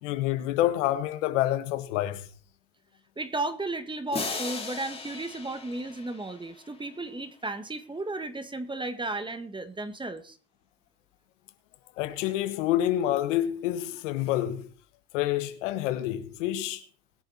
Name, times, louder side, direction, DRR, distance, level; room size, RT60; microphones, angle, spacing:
voice 1, 0.0-2.3 12.0-14.7 15.1-16.8, left 13 dB, 85° left, 1.4 m, -28 dB
voice 2, 3.2-10.4, right 2 dB, 15° right, 1.7 m, -34 dB
sound 1, 4.1-6.9, left 4 dB, 15° left, 2.9 m, -37 dB
21.5 x 7.1 x 4.3 m
supercardioid pair, 100°, 37 cm